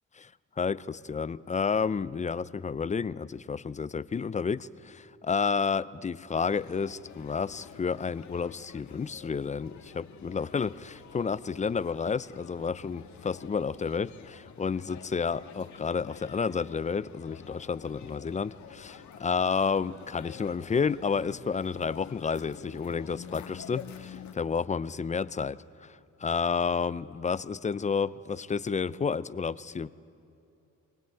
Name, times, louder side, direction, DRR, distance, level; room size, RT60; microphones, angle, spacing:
voice 1, 0.6-29.9, left 5 dB, 25° left, 17 dB, 0.5 m, -31 dB
sound 1, 6.3-24.3, left 8 dB, 70° left, 1.6 m, -48 dB
23.5 x 19.0 x 8.9 m, 2.9 s
cardioid pair, 90°, 30 cm